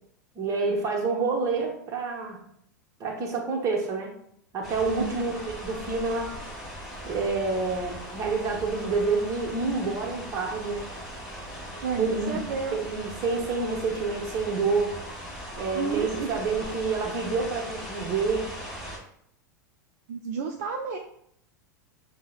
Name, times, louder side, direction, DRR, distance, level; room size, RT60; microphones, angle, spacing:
voice 1, 0.4-2.4 3.0-4.1 4.5-6.3 7.0-10.9 12.0-12.4 12.7-15.0 15.6-18.5, right 4 dB, 30° right, 1 dB, 0.9 m, -28 dB
sound 1, 4.6-19.0, equal, ahead, 1.3 m, -39 dB
voice 2, 11.8-12.8 15.7-16.3 20.1-21.0, right 5 dB, 55° right, 2 dB, 0.4 m, -31 dB
6.0 x 2.0 x 2.3 m, 0.69 s
figure-of-eight pair, 90°, 10 cm